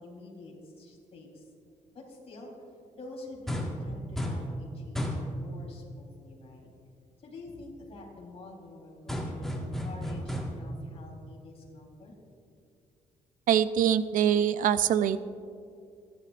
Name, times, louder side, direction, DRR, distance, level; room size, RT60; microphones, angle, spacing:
voice 1, 0.0-1.5 1.9-2.5 2.9-6.7 7.2-12.1, left 2 dB, 45° left, -2 dB, 3.7 m, -47 dB
sound 1, 3.5-3.8 4.2-4.5 5.0-5.3 9.1-10.7, equal, 5° left, 1.6 m, -33 dB
voice 2, 13.5-15.2, right 9 dB, 80° right, 14 dB, 0.5 m, -24 dB
27.0 x 11.0 x 2.5 m, 2.4 s
cardioid pair, 135°, 14 cm